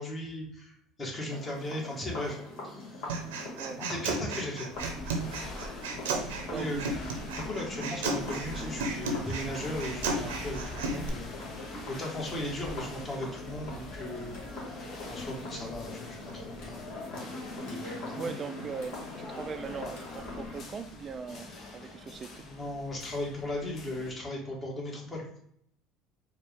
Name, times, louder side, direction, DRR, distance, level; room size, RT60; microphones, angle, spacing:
voice 1, 0.0-2.4 2.6-3.1 3.8-4.7 5.9-6.0 6.5-6.8 7.3-11.3 11.6-16.9 17.6-18.3 21.8-21.9 22.4-25.2, left 1 dB, 30° left, -2 dB, 1.7 m, -37 dB
sound 1, 1.3-20.6, left 1 dB, 65° left, 1.6 m, -42 dB
Human voice, 3.1-11.1, right 3 dB, 85° right, 0.7 m, -34 dB
sound 2, 4.7-24.1, left 2 dB, 50° left, 0.9 m, -45 dB
voice 2, 6.1-6.9 18.2-22.4, right 5 dB, 35° right, 9 dB, 0.4 m, -40 dB
4.4 x 2.4 x 3.5 m, 0.69 s
hypercardioid pair, 80°, 0 cm